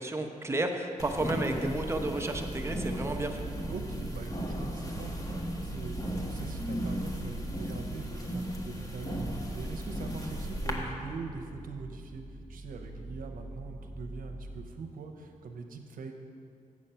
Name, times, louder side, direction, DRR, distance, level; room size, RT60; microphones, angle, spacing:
voice 1, 0.0-3.4, right 2 dB, 20° right, 4 dB, 0.9 m, -32 dB
sound 1, 1.0-10.7, equal, 25° left, 1.3 m, -36 dB
sound 2, 2.3-14.7, right 1 dB, ahead, 1.6 m, -45 dB
voice 2, 3.7-16.2, right 4 dB, 85° right, 4 dB, 0.8 m, -43 dB
8.0 x 7.3 x 5.6 m, 2.4 s
cardioid pair, 70°, 14 cm